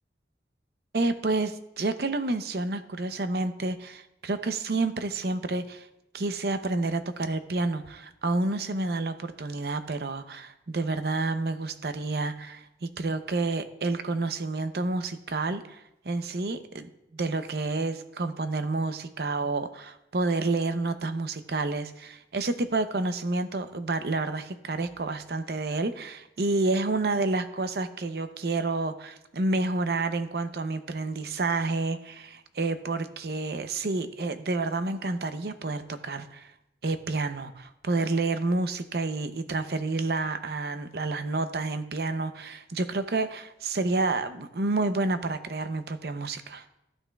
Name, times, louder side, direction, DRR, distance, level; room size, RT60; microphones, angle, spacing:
voice 1, 0.9-5.9 6.1-36.5 36.8-46.7, right 3 dB, 65° right, 10 dB, 0.6 m, -29 dB
14.5 x 8.9 x 2.3 m, 0.88 s
head